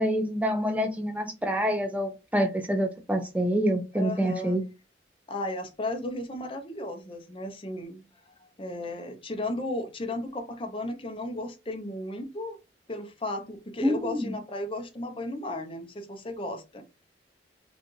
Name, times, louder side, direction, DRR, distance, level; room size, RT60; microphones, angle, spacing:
voice 1, 0.0-4.6 13.8-14.3, equal, 10° right, 0.5 m, -27 dB
voice 2, 3.9-4.6 5.3-8.0 8.6-12.6 12.9-16.8, left 1 dB, 30° left, 0.7 m, -34 dB
5.1 x 2.4 x 3.1 m
head